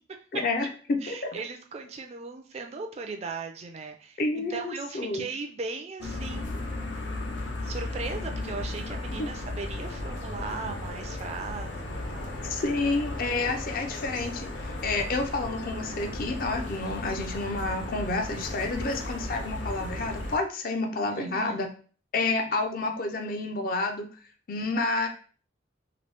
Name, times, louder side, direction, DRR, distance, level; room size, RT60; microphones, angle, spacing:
voice 1, 0.3-1.4 4.2-5.3 9.2-9.3 12.4-21.7 22.1-24.1 24.5-25.1, left 3 dB, 50° left, 4 dB, 0.5 m, -29 dB
voice 2, 1.0-7.3 7.6-12.4 21.1-21.6, right 4 dB, 35° right, 4 dB, 0.3 m, -38 dB
sound 1, 6.0-20.4, left 2 dB, 85° left, 0.7 m, -35 dB
2.9 x 2.6 x 3.3 m, 0.41 s
head